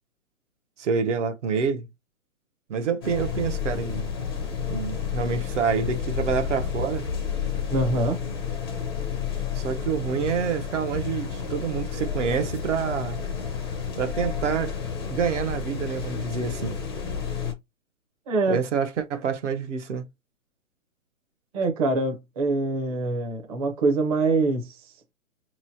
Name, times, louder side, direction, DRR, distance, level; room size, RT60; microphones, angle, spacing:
voice 1, 0.8-1.9 2.7-4.1 4.7-7.1 9.5-13.2 14.0-16.8 18.5-20.1, right 6 dB, 60° right, 0.8 m, -27 dB
sound 1, 3.0-17.5, left 7 dB, 20° left, 0.5 m, -30 dB
voice 2, 7.7-8.2 18.3-18.6 21.5-24.8, right 3 dB, 25° right, 0.7 m, -24 dB
5.3 x 3.0 x 2.7 m
hypercardioid pair, 140°, 42 cm